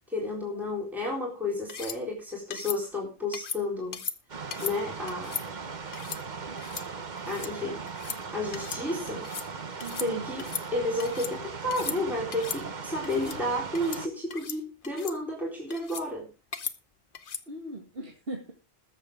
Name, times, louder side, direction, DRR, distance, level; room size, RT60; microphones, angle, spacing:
voice 1, 0.1-4.0 4.6-5.4 7.3-7.8 8.3-9.3 10.0-16.3, left 2 dB, ahead, -4 dB, 3.9 m, -32 dB
sound 1, 1.7-2.0 2.5-2.8 3.3-3.6 3.9-4.2 4.5-4.8 5.1-5.4 5.9-6.2 6.6-6.9 7.2-7.5 7.9-8.2 8.5-8.8 9.1-9.5 9.8-10.1 10.4-11.3 11.7-12.0 12.3-12.6 13.0-13.4 13.7-14.0 14.3-14.6 14.8-15.2 15.7-16.1 16.5-16.8 17.1-17.4, left 6 dB, 55° left, 1.1 m, -37 dB
sound 2, 4.3-14.1, right 5 dB, 45° right, 1.1 m, -38 dB
voice 2, 9.8-10.3 17.5-18.5, right 2 dB, 65° right, 0 dB, 2.3 m, -39 dB
21.0 x 7.2 x 3.6 m, 0.31 s
omnidirectional pair, 1.1 m